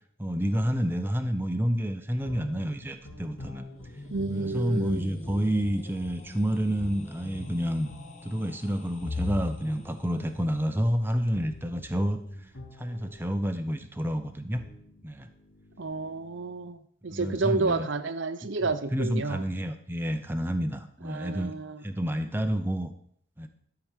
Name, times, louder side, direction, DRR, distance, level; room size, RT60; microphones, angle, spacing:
voice 1, 0.2-3.7 4.3-7.9 8.2-12.2 12.8-14.6 15.0-15.3 17.1-17.9 18.9-21.5 21.8-22.9 23.4-23.5, equal, 10° right, 0.7 m, -29 dB
sound 1, 2.1-13.6 14.3-16.7, left 2 dB, 85° left, 2.5 m, -42 dB
sound 2, 3.6-10.5, left 1 dB, 35° left, 1.1 m, -46 dB
voice 2, 4.1-5.0 15.8-19.5 21.0-21.8, right 3 dB, 60° right, 0.7 m, -30 dB
12.0 x 4.9 x 7.4 m
head